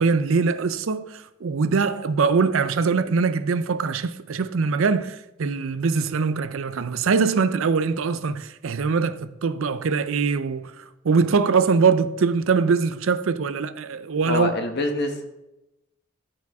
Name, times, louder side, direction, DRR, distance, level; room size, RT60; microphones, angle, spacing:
voice 1, 0.0-14.5, right 5 dB, 65° right, 0.5 m, -22 dB
voice 2, 14.2-15.3, left 2 dB, 50° left, 1.1 m, -25 dB
13.5 x 4.8 x 3.5 m
head